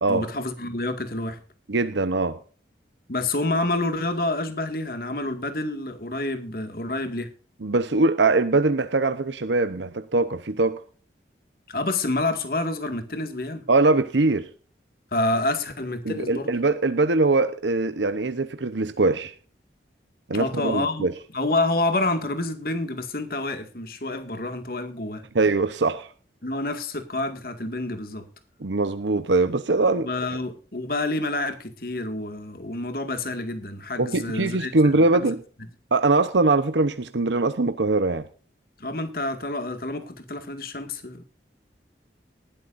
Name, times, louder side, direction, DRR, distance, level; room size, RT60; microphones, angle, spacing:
voice 1, 0.1-1.4 3.1-7.3 11.7-13.6 15.1-16.5 20.3-21.1 21.3-25.2 26.4-28.3 29.9-35.3 38.8-41.2, left 2 dB, 55° left, 2.1 m, -28 dB
voice 2, 1.7-2.4 7.6-10.8 13.7-14.5 16.0-19.3 20.3-21.1 25.3-26.1 28.6-30.1 34.0-35.4 35.9-38.2, right 3 dB, 90° right, 0.9 m, -22 dB
19.0 x 12.5 x 2.6 m
head